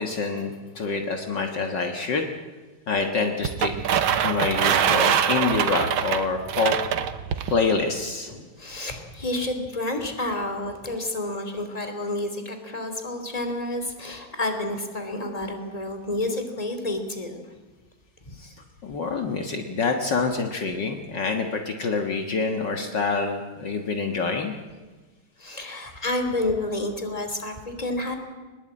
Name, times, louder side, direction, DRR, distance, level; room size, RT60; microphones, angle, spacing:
voice 1, 0.0-2.3 2.9-3.7 4.2-6.8 7.5-8.3 18.4-18.5 18.8-24.5, left 4 dB, 60° left, 4 dB, 2.2 m, -26 dB
sound 1, 3.4-7.5, right 8 dB, 85° right, 1.9 m, -23 dB
voice 2, 8.3-17.4 18.2-18.3 25.4-28.2, left 2 dB, 15° left, 6 dB, 3.0 m, -30 dB
22.0 x 21.0 x 8.8 m, 1.3 s
omnidirectional pair, 2.2 m